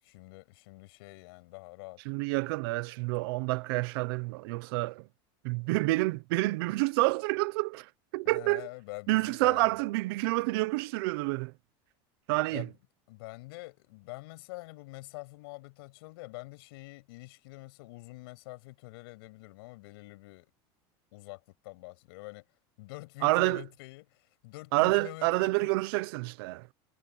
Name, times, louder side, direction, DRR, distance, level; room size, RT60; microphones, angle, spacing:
voice 1, 0.0-2.0 8.2-9.8 12.5-12.7 13.1-20.5 21.1-22.5 22.8-25.8, left 23 dB, 85° left, 7.8 m, -46 dB
voice 2, 2.0-5.1 5.4-8.7 9.1-11.5 12.3-12.7 23.2-23.6 24.7-26.7, right 22 dB, 80° right, 0.9 m, -28 dB
cardioid pair, 155°, 12 cm